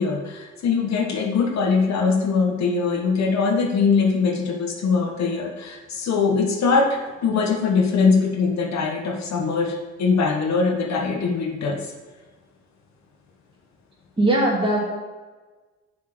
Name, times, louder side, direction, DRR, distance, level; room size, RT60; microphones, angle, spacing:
voice 1, 0.0-11.9, left 4 dB, 65° left, 2 dB, 1.2 m, -22 dB
voice 2, 14.2-14.8, right 1 dB, 15° right, -3 dB, 2.3 m, -19 dB
6.1 x 4.5 x 6.0 m, 1.3 s
cardioid pair, 90°, 30 cm